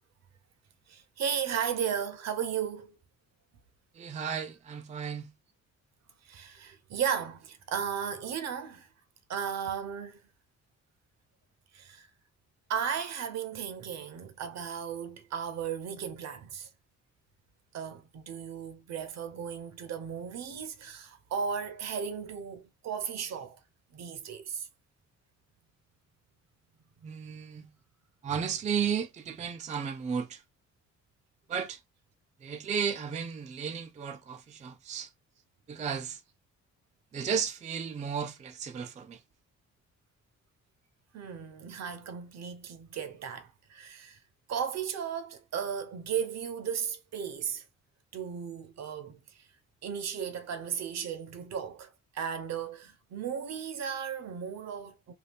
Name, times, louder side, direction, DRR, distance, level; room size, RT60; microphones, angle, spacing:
voice 1, 0.9-3.0 6.2-8.9 9.3-10.2 11.7-12.1 12.7-16.7 17.7-23.6 23.9-24.7 27.0-27.1 27.6-27.7 28.8-28.9 41.1-44.2 44.5-47.6 48.1-49.5 49.8-55.1, right 7 dB, 60° right, 0.7 m, -35 dB
voice 2, 3.9-5.3 27.0-27.7 28.2-30.4 31.5-31.8 32.4-35.1 35.7-36.2 37.1-39.2, right 7 dB, 25° right, 0.4 m, -34 dB
2.7 x 2.2 x 3.4 m
cardioid pair, 90°, 30 cm